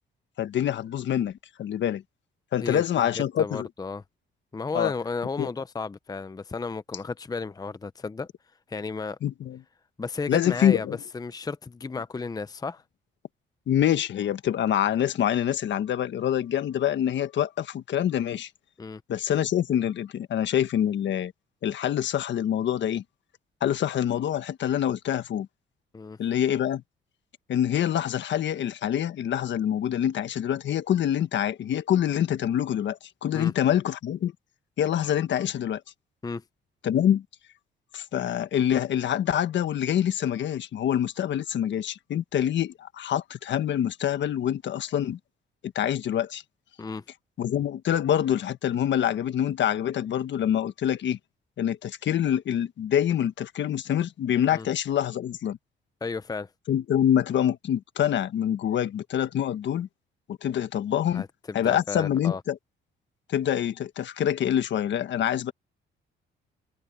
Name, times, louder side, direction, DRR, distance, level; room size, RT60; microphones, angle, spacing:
voice 1, 0.4-2.0 2.5-3.7 4.7-4.9 5.4-5.5 9.2-9.6 10.3-11.0 13.7-18.5 19.1-21.3 21.6-23.0 23.6-25.5 26.2-26.8 27.5-34.3 34.8-35.8 36.8-37.2 37.9-45.2 45.6-46.4 47.4-51.2 51.6-55.6 56.7-59.9 60.3-61.2 61.5-62.6 63.3-65.5, left 10 dB, 65° left, 1.4 m, -26 dB
voice 2, 2.6-4.0 4.5-8.3 8.7-9.2 10.0-12.8 18.8-19.0 25.9-26.2 33.3-33.5 36.2-36.4 46.8-47.0 54.5-54.7 56.0-56.5 61.1-62.4, left 4 dB, 20° left, 0.7 m, -33 dB
cardioid pair, 90°, 20 cm